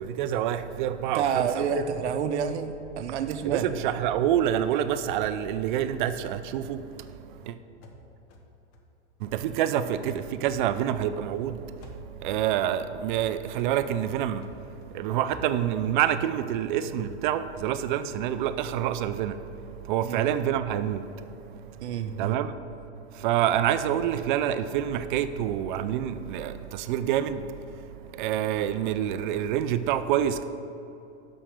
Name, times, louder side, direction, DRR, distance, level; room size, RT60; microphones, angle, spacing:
voice 1, 0.0-1.7 3.4-6.8 7.5-7.6 9.3-10.1 10.4-11.6 12.2-14.4 14.9-19.3 19.9-21.0 22.2-22.5 23.2-27.4 28.2-30.4, right 10 dB, 45° right, 12 dB, 0.4 m, -27 dB
voice 2, 1.1-3.7 20.0-20.3 21.8-22.4, right 7 dB, 70° right, 9 dB, 0.7 m, -29 dB
sound 1, 6.5-9.7 10.1-11.5 11.8-16.0, left 1 dB, 35° left, 0.9 m, -51 dB
6.2 x 5.7 x 6.4 m, 2.8 s
hypercardioid pair, 125°, 35 cm